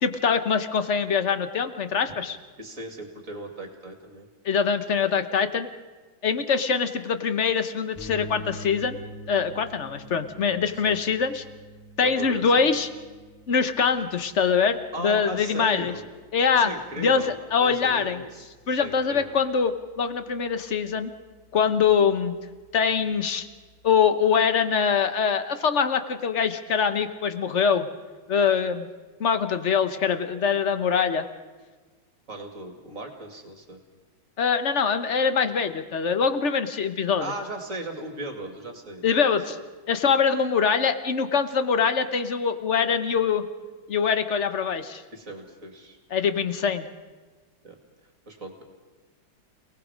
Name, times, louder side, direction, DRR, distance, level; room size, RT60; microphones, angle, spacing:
voice 1, 0.0-2.4 4.4-5.7 6.2-9.0 9.3-11.4 12.0-12.9 13.5-15.9 16.3-16.7 17.0-18.2 18.7-21.1 21.5-22.4 22.7-23.5 23.8-27.9 28.3-28.9 29.2-31.3 34.4-37.3 39.0-39.6 39.9-43.4 43.9-45.0 46.1-46.9, left 6 dB, 45° left, 10 dB, 1.2 m, -23 dB
voice 2, 2.6-4.3 10.9-11.0 12.0-12.8 14.9-16.1 16.5-18.5 18.8-19.4 32.3-33.8 37.2-39.0 45.1-46.0 47.6-47.8 48.3-48.6, right 2 dB, 40° right, 3 dB, 2.9 m, -37 dB
sound 1, 8.0-23.9, equal, 15° left, 3.7 m, -47 dB
29.5 x 18.5 x 5.2 m, 1.3 s
omnidirectional pair, 2.2 m